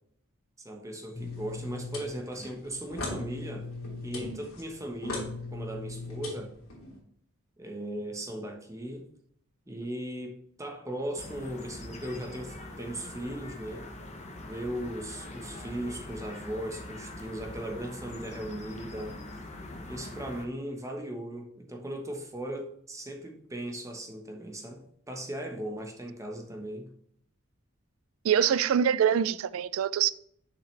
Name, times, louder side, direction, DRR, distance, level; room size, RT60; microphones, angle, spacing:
voice 1, 0.6-3.7 4.0-6.6 7.6-9.1 9.7-13.9 14.4-19.2 19.9-26.9, right 1 dB, 15° right, 1.1 m, -38 dB
sound 1, 1.1-7.0, left 2 dB, 85° left, 2.9 m, -39 dB
sound 2, 11.2-20.5, left 1 dB, 35° left, 0.9 m, -43 dB
voice 2, 28.2-30.1, right 8 dB, 75° right, 0.3 m, -24 dB
6.7 x 5.6 x 3.3 m
head